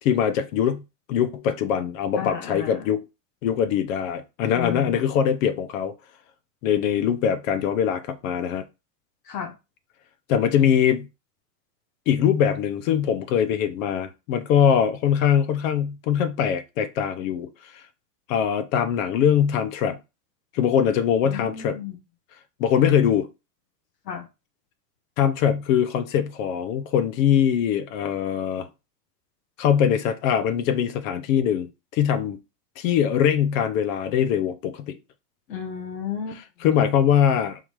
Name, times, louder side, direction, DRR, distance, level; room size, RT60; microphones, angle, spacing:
voice 1, 0.0-0.8 1.1-3.0 3.4-5.9 6.6-8.6 10.3-11.1 12.1-17.5 18.3-20.0 20.5-21.8 22.6-23.3 25.2-28.7 29.6-31.7 31.9-32.4 32.8-35.0 36.6-37.6, left 8 dB, 55° left, 0.9 m, -22 dB
voice 2, 2.2-2.9 4.5-5.3 9.3-9.5 21.2-21.9 24.0-24.3 35.5-36.7, left 8 dB, 85° left, 1.4 m, -33 dB
3.9 x 2.7 x 4.7 m
supercardioid pair, 135°, 48 cm